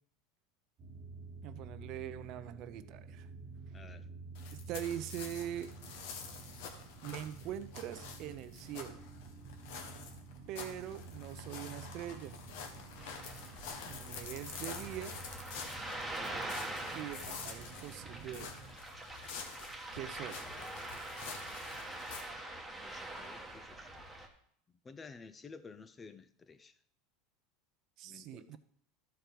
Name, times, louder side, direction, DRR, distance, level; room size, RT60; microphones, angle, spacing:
sound 1, 0.8-18.8, right 4 dB, 30° right, 1.2 m, -51 dB
voice 1, 1.4-3.3 4.5-5.7 7.0-9.0 10.5-12.4 13.8-15.2 16.9-18.6 19.9-20.4 28.0-28.6, right 11 dB, 50° right, 0.6 m, -43 dB
voice 2, 3.7-4.1 22.7-24.0 24.8-26.7 28.0-28.6, left 4 dB, 20° left, 0.5 m, -53 dB
sound 2, 4.4-22.2, left 6 dB, 70° left, 1.3 m, -48 dB
Ocean, 13.0-24.3, right 1 dB, 5° right, 1.2 m, -44 dB
13.0 x 4.6 x 5.2 m
supercardioid pair, 135°, 0 cm